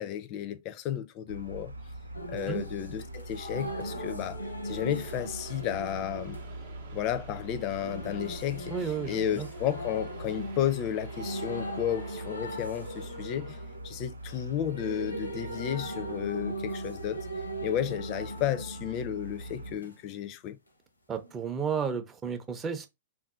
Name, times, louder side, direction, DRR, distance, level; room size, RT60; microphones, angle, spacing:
voice 1, 0.0-1.7 2.3-6.4 6.9-13.6 13.8-17.3 17.6-20.6, left 10 dB, 40° left, 0.4 m, -33 dB
sound 1, 1.3-19.8, right 1 dB, 85° right, 0.4 m, -43 dB
sound 2, 2.1-20.0 21.2-21.3, right 1 dB, 90° left, 0.6 m, -40 dB
sound 3, 4.7-14.9, right 7 dB, 60° right, 0.7 m, -53 dB
voice 2, 8.7-9.5 21.1-22.9, right 6 dB, 20° right, 0.5 m, -32 dB
3.6 x 2.6 x 2.3 m
figure-of-eight pair, 105°, 0 cm